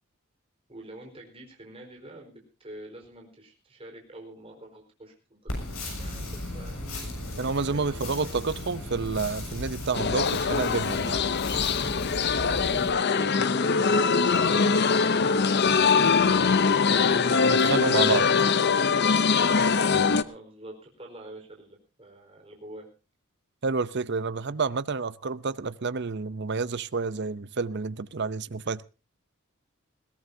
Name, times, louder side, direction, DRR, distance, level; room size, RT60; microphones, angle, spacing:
voice 1, 0.7-2.3 2.6-7.0 7.7-8.4 12.4-16.3 20.2-22.9, right 1 dB, 25° right, 4.5 m, -46 dB
sound 1, 5.5-12.9, left 1 dB, 70° left, 7.1 m, -36 dB
voice 2, 7.4-11.2 17.5-18.3 23.6-28.8, right 4 dB, 50° right, 0.7 m, -29 dB
sound 2, 9.9-20.2, left 5 dB, 50° left, 0.7 m, -22 dB
21.0 x 17.5 x 2.8 m
head